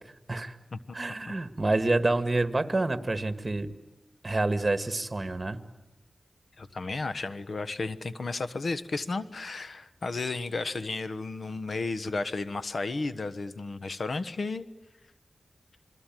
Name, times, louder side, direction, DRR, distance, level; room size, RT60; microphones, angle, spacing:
voice 1, 0.9-3.7 4.2-5.6, right 2 dB, 35° right, 10 dB, 1.8 m, -27 dB
voice 2, 6.6-14.7, left 3 dB, 70° left, 13 dB, 1.2 m, -33 dB
28.0 x 21.5 x 9.2 m, 1.1 s
cardioid pair, 50°, 0 cm